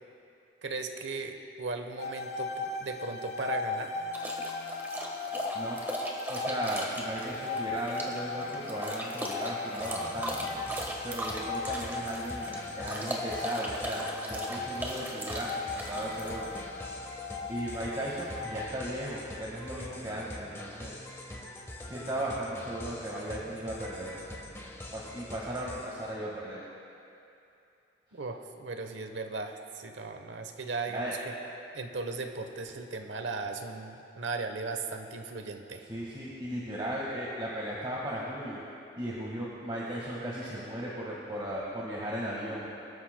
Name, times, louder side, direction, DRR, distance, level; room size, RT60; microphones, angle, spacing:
voice 1, 0.6-4.0 28.1-31.3 31.7-35.9, right 3 dB, 90° right, 6 dB, 0.9 m, -37 dB
sound 1, 2.0-18.7, left 3 dB, 60° left, 0.7 m, -38 dB
sound 2, 4.1-16.6, equal, 10° right, 1.3 m, -38 dB
voice 2, 6.3-10.5 11.0-16.6 17.5-21.0 21.9-24.2 24.9-26.6 30.9-31.1 35.9-38.6 39.0-42.7, right 1 dB, 25° right, -6 dB, 1.6 m, -36 dB
sound 3, 9.8-26.1, left 1 dB, 15° left, 1.0 m, -45 dB
24.0 x 13.0 x 2.2 m, 2.7 s
head